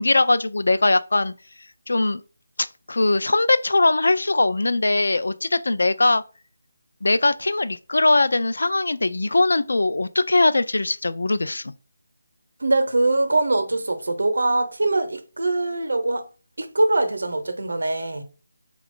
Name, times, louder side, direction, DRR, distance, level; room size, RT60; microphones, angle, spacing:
voice 1, 0.0-1.3 1.9-2.2 2.6-6.2 7.0-11.7, left 2 dB, 75° left, 0.3 m, -21 dB
voice 2, 12.6-16.3 16.6-18.2, right 2 dB, 90° right, 0.7 m, -22 dB
3.8 x 2.3 x 3.6 m
figure-of-eight pair, 180°, 0 cm